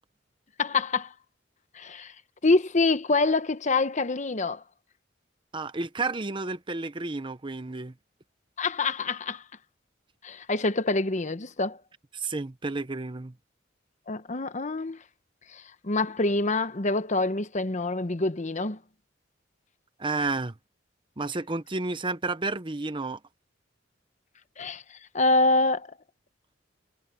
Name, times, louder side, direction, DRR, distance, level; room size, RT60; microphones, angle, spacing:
voice 1, 0.6-1.1 1.7-2.1 2.4-4.6 8.6-9.4 10.2-11.8 14.1-15.0 15.5-18.8 24.6-25.9, left 3 dB, 40° left, 1.0 m, -26 dB
voice 2, 5.5-7.9 12.1-13.3 20.0-20.5 21.2-23.2, right 3 dB, 25° right, 0.8 m, -31 dB
head